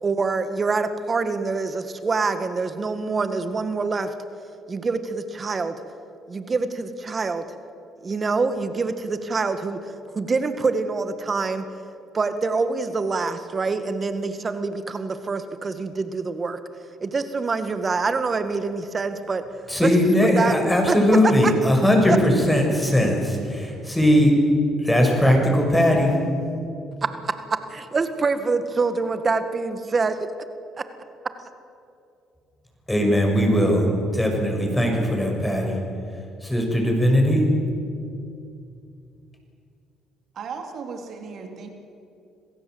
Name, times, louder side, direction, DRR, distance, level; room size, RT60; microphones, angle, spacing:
voice 1, 0.0-4.1 4.7-5.8 6.3-7.5 8.0-9.8 10.1-11.7 12.1-16.6 17.0-19.4 19.8-19.9 20.4-20.6 20.9-21.0 27.7-30.2, right 4 dB, 35° right, 10 dB, 1.8 m, -25 dB
voice 2, 19.7-24.3 24.8-26.2 32.9-33.8 34.1-35.8 36.1-37.5, equal, 10° left, 1 dB, 6.3 m, -19 dB
voice 3, 40.3-41.7, right 5 dB, 60° right, 4 dB, 3.5 m, -36 dB
26.0 x 16.5 x 8.0 m, 2.6 s
supercardioid pair, 85°, 0 cm